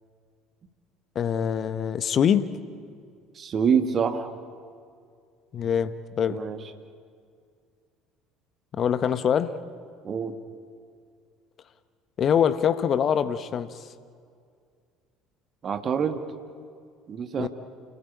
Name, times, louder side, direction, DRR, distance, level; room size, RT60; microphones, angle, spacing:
voice 1, 1.1-2.5 5.5-6.4 8.8-9.5 12.2-13.7 17.4-17.5, left 8 dB, 40° left, 13 dB, 1.1 m, -24 dB
voice 2, 3.4-4.3 6.3-6.6 10.0-10.4 15.6-16.2 17.1-17.5, right 7 dB, 40° right, 8 dB, 1.8 m, -26 dB
29.0 x 17.5 x 8.8 m, 2.2 s
figure-of-eight pair, 60°, 0 cm